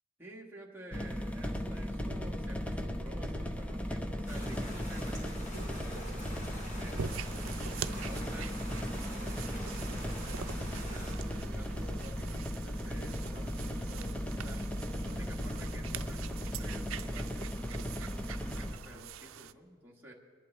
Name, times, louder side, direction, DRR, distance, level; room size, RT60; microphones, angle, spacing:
voice 1, 0.2-7.4 7.9-14.6 15.0-20.1, equal, 10° right, -3 dB, 1.5 m, -51 dB
sound 1, 0.9-18.8, equal, 5° left, 0.6 m, -37 dB
sound 2, 4.3-11.1, equal, 40° left, 4.1 m, -47 dB
sound 3, 7.0-19.5, right 8 dB, 90° right, 0.4 m, -45 dB
22.5 x 11.5 x 3.3 m, 2.1 s
head